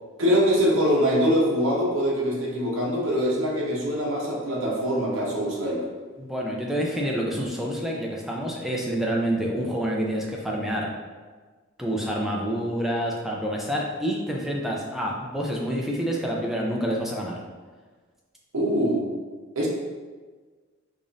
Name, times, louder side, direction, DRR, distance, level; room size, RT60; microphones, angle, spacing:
voice 1, 0.2-5.8 18.5-19.0 19.6-19.7, equal, 70° right, -3 dB, 0.9 m, -23 dB
voice 2, 6.2-10.9 11.8-17.4, equal, ahead, -2 dB, 0.4 m, -28 dB
4.9 x 2.5 x 2.6 m, 1.4 s
head